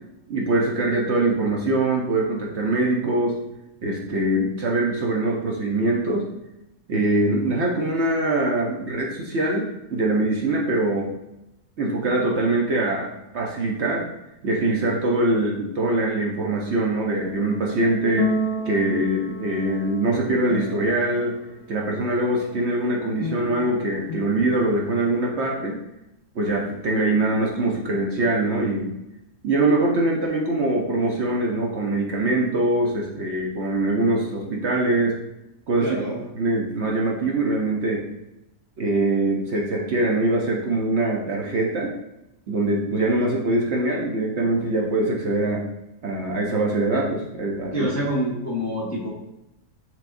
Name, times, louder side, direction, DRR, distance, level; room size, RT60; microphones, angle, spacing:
voice 1, 0.3-3.4 3.8-6.3 6.9-11.1 11.8-13.1 13.3-14.0 14.4-18.3 18.6-21.4 21.7-25.8 26.3-28.9 29.4-35.2 35.7-36.0 36.4-38.0 38.8-41.9 42.5-45.6 46.0-47.9, right 2 dB, 55° right, -1 dB, 0.9 m, -23 dB
sound 1, 17.1-21.4 23.2-25.3, left 1 dB, 70° left, 1.0 m, -32 dB
voice 2, 35.8-36.2 47.7-49.1, equal, 15° left, -5 dB, 0.5 m, -26 dB
6.1 x 3.4 x 2.5 m, 0.90 s
omnidirectional pair, 1.7 m